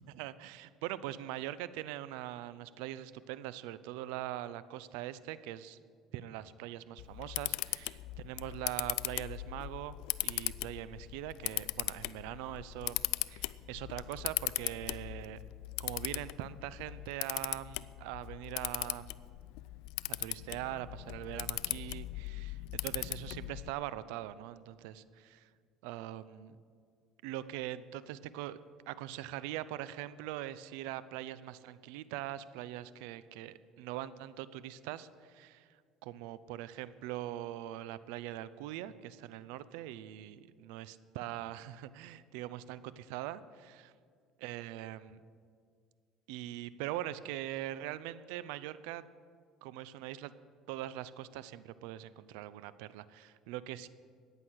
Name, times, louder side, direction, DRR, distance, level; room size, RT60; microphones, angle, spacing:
voice 1, 0.1-5.8 6.1-10.0 10.2-13.0 13.3-15.4 15.8-19.1 20.1-25.5 25.8-26.6 27.2-28.6 28.9-43.9 44.4-45.2 46.3-49.1 49.6-50.3 50.7-53.9, right 13 dB, 85° right, 16 dB, 0.5 m, -42 dB
Camera, 7.0-23.7, left 19 dB, 80° left, 0.4 m, -39 dB
14.5 x 9.7 x 6.3 m, 2.1 s
cardioid pair, 125°, 0 cm